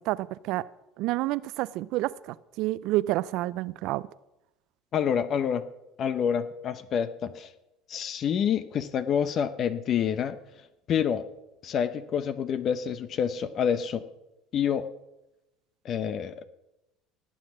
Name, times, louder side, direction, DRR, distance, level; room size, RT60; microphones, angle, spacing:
voice 1, 0.1-0.6 1.0-2.1 2.6-4.0, right 17 dB, 65° right, 0.4 m, -28 dB
voice 2, 4.9-5.7 6.0-7.5 7.9-10.4 10.9-11.2 11.6-14.0 14.5-14.9 15.8-16.4, left 8 dB, 50° left, 0.8 m, -27 dB
18.0 x 7.4 x 6.0 m
hypercardioid pair, 75°, 0 cm